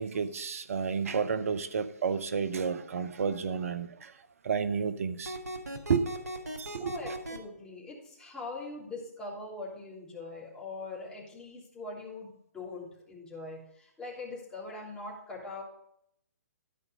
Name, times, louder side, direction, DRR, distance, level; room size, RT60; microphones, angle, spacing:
voice 1, 0.0-4.1 4.4-5.4 5.9-6.1 6.6-7.1, right 6 dB, 60° right, 0.9 m, -31 dB
sound 1, 5.2-7.4, right 1 dB, 80° right, 1.7 m, -38 dB
voice 2, 6.8-15.6, left 3 dB, 10° left, 3.2 m, -42 dB
12.5 x 5.2 x 6.6 m
figure-of-eight pair, 130°, 9 cm